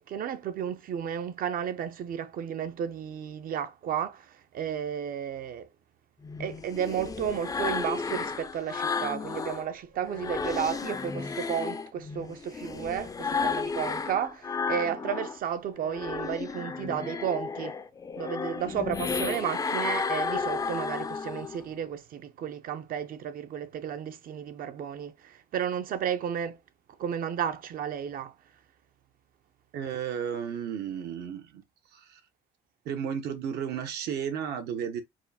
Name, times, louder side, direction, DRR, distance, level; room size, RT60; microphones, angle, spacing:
voice 1, 0.0-5.7 6.4-17.8 18.2-26.6 27.0-28.4, right 8 dB, 55° right, 0.7 m, -33 dB
sound 1, 6.2-9.6 10.0-15.4 15.8-21.6, left 5 dB, 20° left, 0.4 m, -33 dB
voice 2, 29.7-31.6 31.9-32.2 32.8-35.0, right 8 dB, 75° right, 1.1 m, -33 dB
4.7 x 2.4 x 4.2 m
cardioid pair, 110°, 17 cm